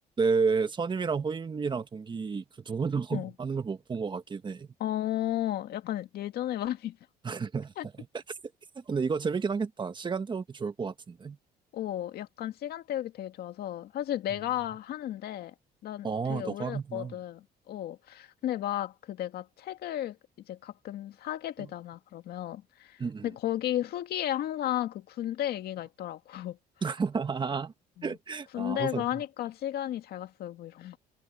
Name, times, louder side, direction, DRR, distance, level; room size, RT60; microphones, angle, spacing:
voice 1, 0.2-4.7 7.2-7.7 8.0-8.1 8.7-11.4 16.0-17.1 21.6-21.7 23.0-23.3 26.8-27.7 28.0-29.2, right 5 dB, 30° right, 1.5 m, -31 dB
voice 2, 4.8-7.0 7.8-7.9 11.7-15.5 15.8-20.2 20.5-26.6 28.0-28.1 28.5-31.0, left 12 dB, 70° left, 2.0 m, -34 dB
cardioid pair, 110°, 17 cm